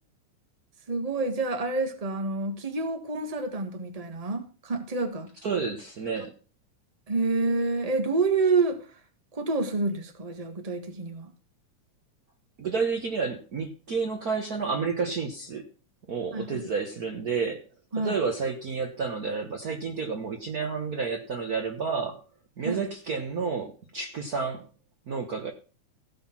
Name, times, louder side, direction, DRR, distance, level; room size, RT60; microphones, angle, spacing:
voice 1, 0.9-5.3 7.1-8.8 9.3-11.3 16.3-16.7 17.9-18.2 22.6-22.8, right 3 dB, 25° right, 0.7 m, -28 dB
voice 2, 5.4-6.3 12.6-15.7 16.1-17.6 18.0-22.2 22.6-24.6 25.1-25.5, right 5 dB, 85° right, 0.8 m, -30 dB
15.5 x 5.7 x 6.0 m
omnidirectional pair, 3.4 m